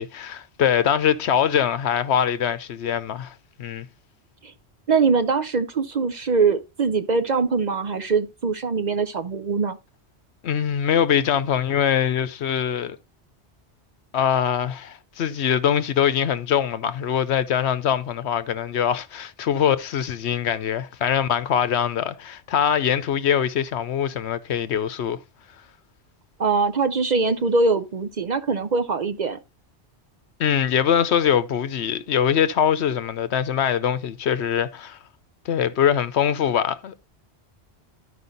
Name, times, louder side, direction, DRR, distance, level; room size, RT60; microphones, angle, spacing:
voice 1, 0.0-3.3 3.6-3.9 10.4-13.0 14.1-25.2 30.4-35.0 35.4-37.0, left 9 dB, 75° left, 1.0 m, -23 dB
voice 2, 4.9-9.8 26.4-29.4, right 4 dB, 50° right, 0.6 m, -22 dB
11.5 x 5.1 x 3.9 m
omnidirectional pair, 1.1 m